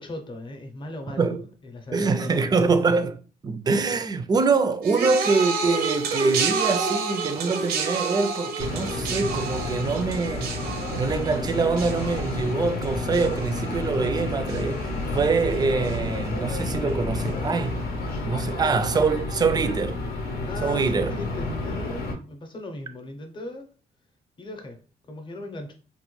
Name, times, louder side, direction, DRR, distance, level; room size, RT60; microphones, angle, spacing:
voice 1, 0.0-2.7 20.4-23.7 24.4-25.7, left 2 dB, 30° left, 0.7 m, -38 dB
voice 2, 1.9-10.5 11.0-17.8 18.2-20.0 20.6-21.1, right 4 dB, 25° right, 0.3 m, -24 dB
sound 1, 4.8-14.2 14.5-15.0 15.9-16.0, right 4 dB, 80° right, 0.5 m, -30 dB
sound 2, 8.6-22.1, left 2 dB, 85° left, 0.7 m, -30 dB
3.1 x 2.2 x 3.0 m
cardioid pair, 120°, 16 cm